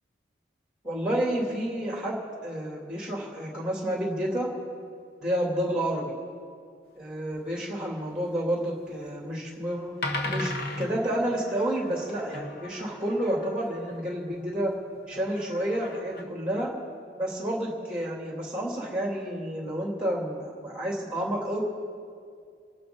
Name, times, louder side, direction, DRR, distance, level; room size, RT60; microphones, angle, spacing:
voice 1, 0.8-4.5 5.2-6.1 7.0-9.9 10.2-10.5 10.8-14.7 15.1-16.7 17.2-21.6, right 1 dB, 5° right, -2 dB, 2.9 m, -30 dB
sound 1, 7.3-7.4 8.9-9.1 9.7-9.8 10.0-14.5 15.1-16.2, left 2 dB, 55° left, 1.2 m, -37 dB
28.0 x 12.0 x 4.0 m, 2.2 s
head